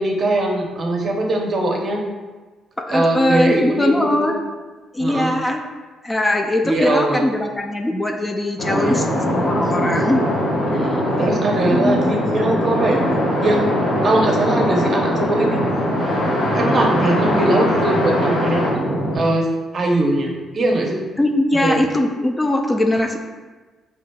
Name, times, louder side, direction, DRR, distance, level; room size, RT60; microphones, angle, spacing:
voice 1, 0.0-2.0 2.9-4.3 5.0-5.3 6.6-7.3 8.7-9.0 10.7-13.0 13.4-13.7 14.0-15.6 16.5-18.8 19.1-21.0 21.6-21.8, right 2 dB, 45° right, 1 dB, 0.7 m, -21 dB
voice 2, 2.9-4.4 4.9-5.6 6.0-10.2 10.8-11.0 11.7-12.1 21.2-23.2, left 1 dB, 15° left, 3 dB, 0.3 m, -20 dB
sound 1, 8.6-19.2, equal, 65° left, 1.1 m, -21 dB
5.0 x 2.8 x 2.2 m, 1.3 s
cardioid pair, 90°, 0 cm